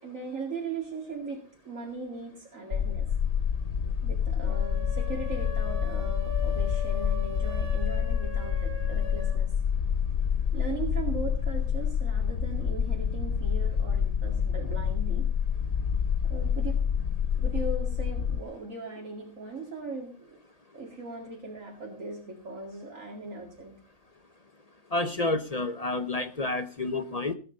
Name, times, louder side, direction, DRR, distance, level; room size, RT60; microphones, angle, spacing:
voice 1, 0.0-3.1 4.0-9.5 10.5-15.3 16.3-16.8 17.3-20.4 20.7-23.7 25.9-26.0, right 3 dB, 65° right, -1 dB, 2.7 m, -39 dB
sound 1, 2.7-18.4, left 7 dB, 55° left, 1.1 m, -28 dB
sound 2, 4.4-9.4, left 6 dB, 90° right, 3.5 m, -40 dB
voice 2, 24.9-27.3, left 2 dB, 35° left, 11 dB, 0.8 m, -29 dB
17.5 x 9.1 x 5.2 m, 0.38 s
omnidirectional pair, 1.5 m